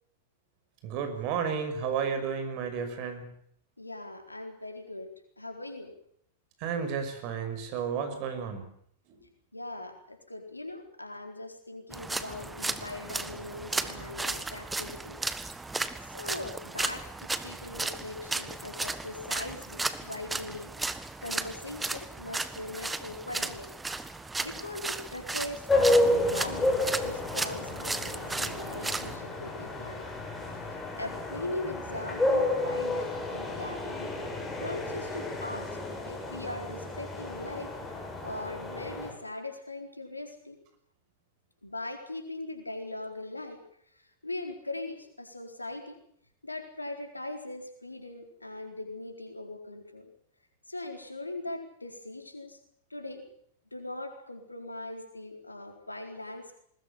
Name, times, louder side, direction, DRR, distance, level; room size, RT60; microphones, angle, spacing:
voice 1, 0.8-3.3 6.6-8.6 9.1-9.2, right 6 dB, 45° right, 8 dB, 5.9 m, -32 dB
voice 2, 3.8-5.1 5.4-5.9 9.5-15.2 16.0-20.7 21.2-23.7 24.4-30.1 31.0-34.2 34.6-35.8 36.1-37.7 38.2-40.6 41.6-43.6 43.9-46.0 46.4-50.1 50.7-52.6 52.9-53.2 53.7-56.6, left 2 dB, 85° left, 5 dB, 4.3 m, -40 dB
sound 1, 11.9-29.2, right 3 dB, 10° right, 1.5 m, -35 dB
sound 2, 25.7-39.1, left 1 dB, 10° left, 7.1 m, -31 dB
20.5 x 20.5 x 8.8 m, 0.67 s
figure-of-eight pair, 95°, 0 cm